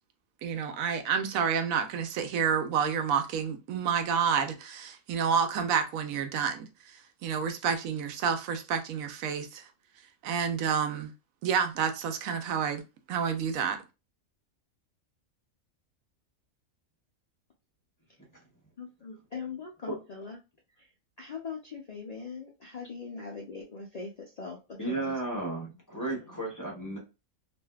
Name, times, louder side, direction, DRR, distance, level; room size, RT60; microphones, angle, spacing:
voice 1, 0.4-6.7 7.2-9.6 10.2-11.1 11.4-12.8 13.1-13.8, right 7 dB, 80° right, 1.0 m, -29 dB
voice 2, 18.8-20.4 21.2-24.6 24.9-25.1, left 5 dB, 90° left, 0.3 m, -41 dB
voice 3, 24.8-27.0, right 2 dB, 15° left, 0.8 m, -33 dB
3.3 x 2.6 x 2.2 m
omnidirectional pair, 1.4 m